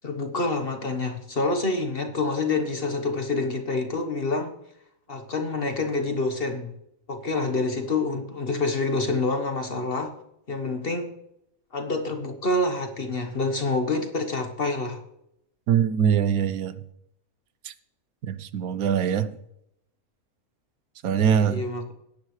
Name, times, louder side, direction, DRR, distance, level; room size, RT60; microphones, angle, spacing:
voice 1, 0.0-4.5 5.1-6.7 7.1-10.1 10.5-11.1 11.7-15.0 21.4-21.9, left 3 dB, 45° left, 5 dB, 1.3 m, -27 dB
voice 2, 15.7-16.8 17.6-17.7 18.2-19.4 21.0-21.6, right 8 dB, 90° right, 13 dB, 1.2 m, -23 dB
17.0 x 10.5 x 3.2 m, 0.79 s
omnidirectional pair, 1.5 m